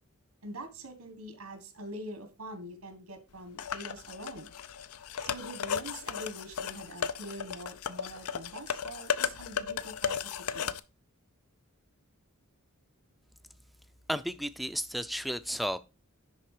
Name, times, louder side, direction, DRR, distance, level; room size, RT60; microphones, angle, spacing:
voice 1, 0.4-4.5 5.2-10.2 10.5-10.7, right 1 dB, 90° right, 1.4 m, -44 dB
sound 1, 3.6-10.8, left 7 dB, 85° left, 0.5 m, -35 dB
voice 2, 14.1-15.8, equal, ahead, 0.4 m, -33 dB
10.5 x 3.6 x 4.8 m
head